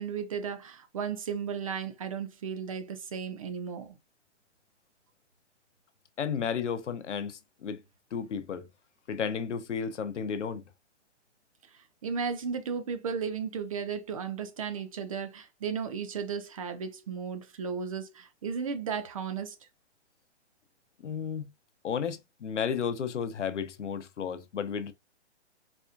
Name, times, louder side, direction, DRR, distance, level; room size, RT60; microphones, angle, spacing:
voice 1, 0.0-4.0 12.0-19.7, right 6 dB, 30° right, 0.4 m, -35 dB
voice 2, 6.2-7.8 8.1-8.7 9.1-10.6 21.0-21.5 21.8-24.9, left 7 dB, 85° left, 0.7 m, -33 dB
4.2 x 2.3 x 2.5 m
hypercardioid pair, 135°, 35 cm